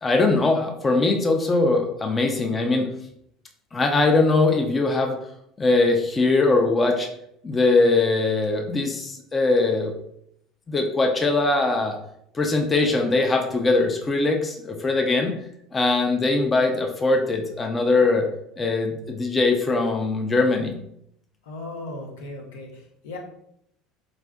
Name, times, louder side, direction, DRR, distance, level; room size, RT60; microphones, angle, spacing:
voice 1, 0.0-2.9 3.7-5.2 5.6-7.1 7.4-9.9 10.7-12.0 12.3-15.3 15.7-18.3 18.6-20.8, left 3 dB, 25° left, 3 dB, 0.5 m, -21 dB
voice 2, 21.4-23.2, left 2 dB, 80° left, 0 dB, 0.7 m, -37 dB
3.2 x 2.6 x 2.3 m, 0.73 s
hypercardioid pair, 75°, 0 cm